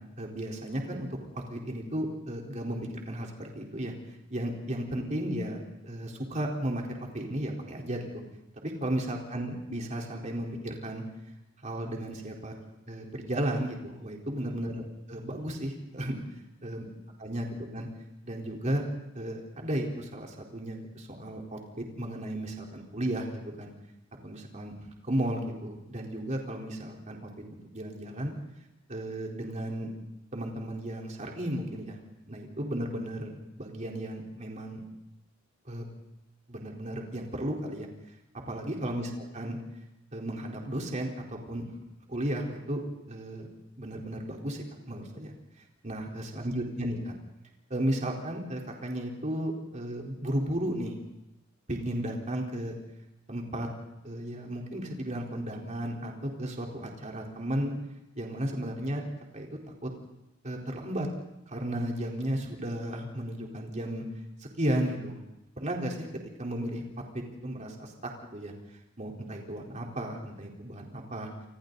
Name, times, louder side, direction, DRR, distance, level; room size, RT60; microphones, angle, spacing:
voice 1, 0.2-1.1 1.3-3.9 4.3-8.2 8.6-11.0 11.6-12.5 12.9-14.8 15.1-16.2 16.6-16.8 17.2-17.9 18.2-18.8 19.1-23.3 23.6-23.7 24.2-24.7 25.0-27.2 27.5-28.3 28.9-29.9 30.3-32.0 32.3-33.3 33.6-34.8 35.7-35.9 36.5-37.9 38.5-39.6 40.1-41.7 42.1-42.8 43.1-43.5 43.8-45.3 45.8-47.1 47.7-50.9 51.7-52.7 53.3-53.7 54.0-57.7 58.2-59.0 59.3-59.5 59.8-59.9 60.4-61.1 61.5-64.0 64.6-65.2 65.6-66.1 66.4-66.8 67.1-67.9 68.3-68.5 69.0-71.3, right 1 dB, 35° right, 0 dB, 4.0 m, -34 dB
29.0 x 25.5 x 4.0 m, 0.92 s
head